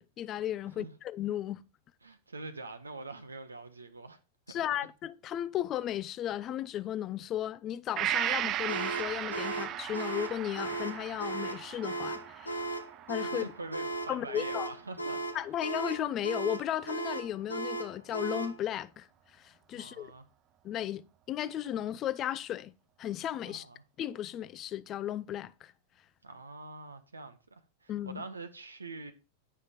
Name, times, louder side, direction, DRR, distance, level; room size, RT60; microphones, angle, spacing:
voice 1, 0.0-1.6 4.5-12.6 13.1-13.5 14.1-14.7 15.3-19.1 19.4-20.1 20.6-22.7 23.0-23.7 24.0-25.7 27.9-28.2, left 11 dB, 30° left, 0.5 m, -35 dB
voice 2, 2.0-4.2 4.5-4.6 13.3-15.2 19.7-20.2 23.4-23.8 26.2-29.1, right 3 dB, 80° right, 0.8 m, -44 dB
Gong, 8.0-15.6 16.0-16.1, right 12 dB, 35° right, 0.4 m, -37 dB
sound 1, 8.7-18.6, right 2 dB, 85° left, 0.9 m, -36 dB
9.6 x 5.6 x 5.0 m
figure-of-eight pair, 90°, 0 cm